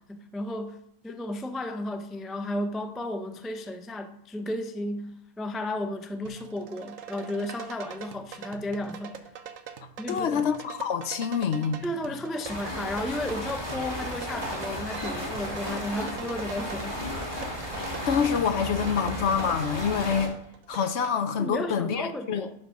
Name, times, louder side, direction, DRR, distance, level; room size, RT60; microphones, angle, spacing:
voice 1, 0.0-9.2 10.0-10.4 11.8-17.0 21.4-22.5, left 1 dB, ahead, 0.3 m, -33 dB
sound 1, 6.3-21.1, right 7 dB, 80° right, 1.2 m, -43 dB
voice 2, 10.1-11.8 17.6-20.4 20.7-22.4, left 7 dB, 60° left, 0.9 m, -27 dB
sound 2, 12.4-20.3, equal, 20° left, 2.7 m, -34 dB
10.5 x 5.5 x 5.9 m
omnidirectional pair, 1.4 m